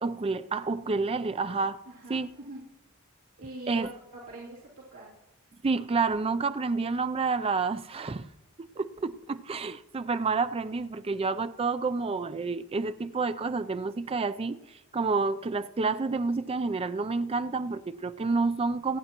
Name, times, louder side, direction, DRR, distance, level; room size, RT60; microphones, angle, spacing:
voice 1, 0.0-1.8 2.1-2.3 3.7-3.9 5.6-8.3 8.6-14.6 14.9-19.0, right 4 dB, 25° right, 0.4 m, -29 dB
voice 2, 1.9-2.6 3.4-5.1, right 1 dB, 75° right, 2.8 m, -43 dB
25.5 x 9.2 x 3.0 m
head